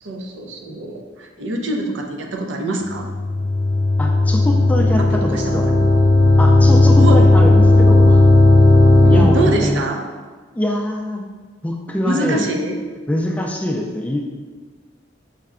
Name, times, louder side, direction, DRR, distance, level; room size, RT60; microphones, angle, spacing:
voice 1, 0.0-3.1 5.0-5.9 7.0-7.2 9.0-10.0 12.1-12.8, right 2 dB, 70° right, 2 dB, 0.5 m, -24 dB
sound 1, 2.9-9.7, left 2 dB, 70° left, 0.5 m, -13 dB
voice 2, 4.0-5.7 6.4-8.2 9.1-9.8 10.5-11.2 11.6-12.5 13.1-14.2, left 1 dB, 10° left, 0 dB, 0.3 m, -23 dB
5.5 x 2.2 x 3.6 m, 1.4 s
head